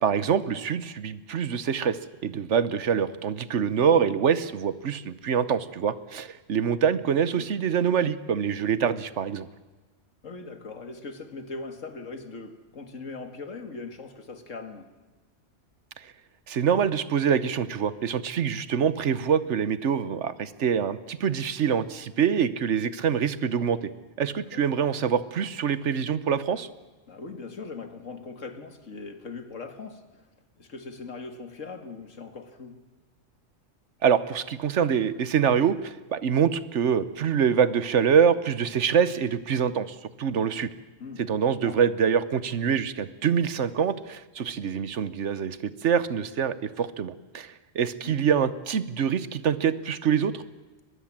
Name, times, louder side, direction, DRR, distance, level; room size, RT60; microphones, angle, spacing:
voice 1, 0.0-9.5 16.5-23.8 24.2-26.7 34.0-40.7 41.2-50.4, right 7 dB, 70° right, 1.2 m, -25 dB
voice 2, 10.2-14.9 24.2-24.7 27.1-30.1 30.6-32.8 41.0-41.8 48.0-48.3, left 4 dB, 80° left, 2.3 m, -40 dB
23.0 x 20.5 x 7.4 m
omnidirectional pair, 1.3 m